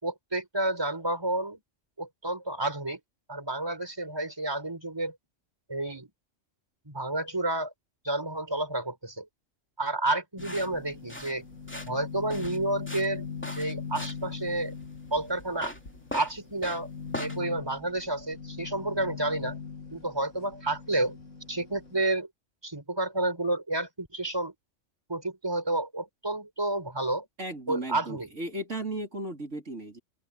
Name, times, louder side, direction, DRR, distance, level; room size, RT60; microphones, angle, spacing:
voice 1, 0.0-1.6 2.0-3.0 3.3-5.2 5.7-6.1 6.9-7.7 8.0-9.3 9.8-11.4 11.9-13.2 13.5-14.7 15.1-15.7 16.1-16.9 17.1-19.6 19.9-21.2 21.5-22.3 22.6-24.5 25.1-27.3 27.7-28.3, right 2 dB, 20° right, 4.5 m, -30 dB
sound 1, 10.4-22.0, left 6 dB, 70° left, 2.6 m, -41 dB
sound 2, 10.4-17.4, left 1 dB, 10° left, 2.5 m, -41 dB
voice 2, 27.4-30.0, right 1 dB, 70° right, 4.3 m, -35 dB
open air
omnidirectional pair, 1.3 m